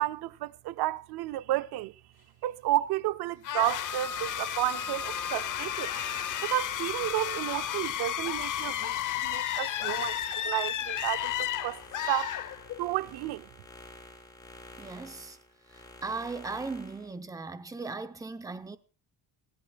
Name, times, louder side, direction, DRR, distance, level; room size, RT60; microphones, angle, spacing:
voice 1, 0.0-1.9 2.4-5.9 6.4-9.0 9.2-10.2 10.4-11.8 12.1-12.3 12.8-13.5, right 16 dB, 85° right, 0.6 m, -31 dB
sound 1, 3.4-13.0, left 10 dB, 55° left, 0.9 m, -33 dB
sound 2, 4.0-8.8 9.2-17.1, left 1 dB, 10° left, 5.6 m, -52 dB
voice 2, 14.8-15.4 15.7-18.8, right 3 dB, 10° right, 0.7 m, -38 dB
21.5 x 16.0 x 2.3 m
cardioid pair, 155°, 37 cm